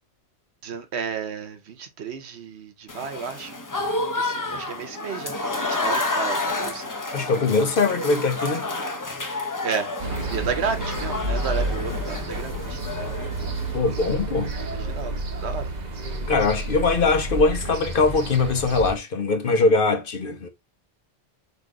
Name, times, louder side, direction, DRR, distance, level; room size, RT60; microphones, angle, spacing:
voice 1, 0.6-3.6 4.1-6.9 9.6-9.9 10.3-12.8 14.7-15.7, right 6 dB, 70° right, 1.1 m, -32 dB
Applause / Crowd, 2.9-13.8, left 2 dB, 25° left, 0.5 m, -30 dB
voice 2, 7.1-8.7 13.7-14.5 16.3-20.5, left 3 dB, 55° left, 0.9 m, -22 dB
sound 1, 10.0-19.0, right 2 dB, 40° right, 0.9 m, -30 dB
4.1 x 2.7 x 4.8 m
omnidirectional pair, 1.2 m